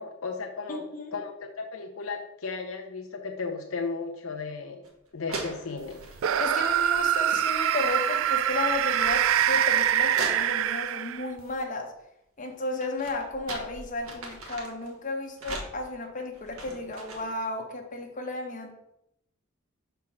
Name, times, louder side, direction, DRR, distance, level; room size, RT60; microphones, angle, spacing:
voice 1, 0.0-0.8 1.1-4.8 5.1-6.0, left 4 dB, 70° left, 3 dB, 0.7 m, -35 dB
voice 2, 0.7-1.2 6.4-11.9 12.4-18.8, left 2 dB, 35° left, 2 dB, 1.2 m, -33 dB
sound 1, 4.8-4.9 5.3-6.2 7.0-7.5 7.7-10.9 12.5-14.9 15.4-17.4, right 2 dB, 85° right, 1.6 m, -41 dB
sound 2, 6.2-11.4, right 10 dB, 70° right, 0.3 m, -24 dB
5.8 x 4.5 x 6.1 m, 0.82 s
head